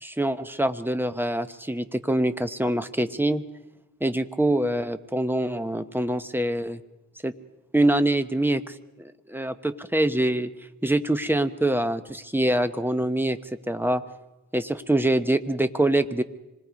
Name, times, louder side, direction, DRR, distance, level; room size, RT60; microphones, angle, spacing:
voice 1, 0.0-3.4 4.0-6.8 7.2-7.3 7.7-10.5 10.8-13.4 13.7-14.0 14.5-16.2, right 1 dB, 5° right, 9 dB, 0.9 m, -24 dB
25.5 x 20.5 x 5.2 m, 0.98 s
wide cardioid pair, 105°, 32 cm